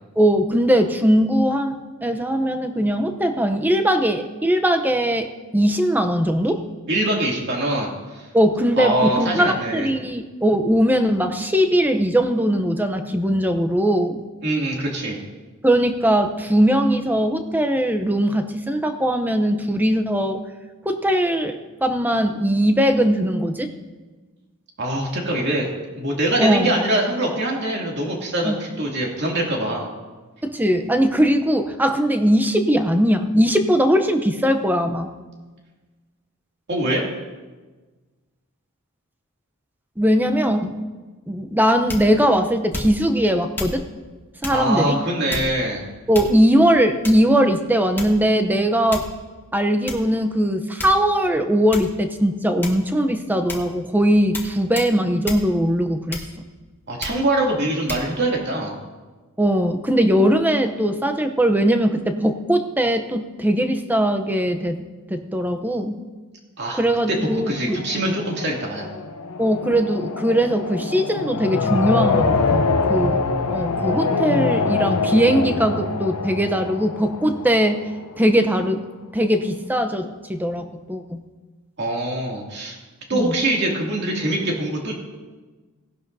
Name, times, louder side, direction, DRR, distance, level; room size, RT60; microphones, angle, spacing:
voice 1, 0.2-1.7 2.0-5.3 5.5-6.6 8.3-14.3 15.6-20.4 20.8-23.7 26.4-26.8 28.4-28.6 30.4-35.1 40.0-40.8 41.3-43.8 44.4-44.9 46.1-49.0 49.5-56.2 59.4-66.0 66.8-67.8 69.4-73.2 73.5-77.8 78.2-78.8 79.1-81.2 83.1-83.4, equal, 10° right, 7 dB, 0.7 m, -20 dB
voice 2, 6.9-8.2 8.8-9.9 14.4-15.2 24.8-25.7 26.0-29.9 36.7-37.1 44.5-45.9 56.9-58.8 66.6-66.8 67.1-67.2 67.5-68.9 81.8-82.8 83.1-84.9, right 1 dB, 50° right, -2 dB, 2.5 m, -23 dB
sound 1, 41.9-42.2 42.7-43.1 43.5-43.8 44.4-44.6 45.3-45.7 46.1-46.6 47.0-47.3 48.0-48.3 48.9-49.2 49.9-50.0 50.8-51.2 51.7-52.0 52.6-53.0 53.5-53.7 54.3-54.5 54.7-54.9 55.2-55.5 56.1-56.5 57.0-57.2 57.9-58.1, left 2 dB, 10° left, 1.4 m, -31 dB
sound 2, 67.3-78.1, left 4 dB, 80° left, 0.8 m, -24 dB
18.0 x 11.5 x 2.7 m, 1.3 s
head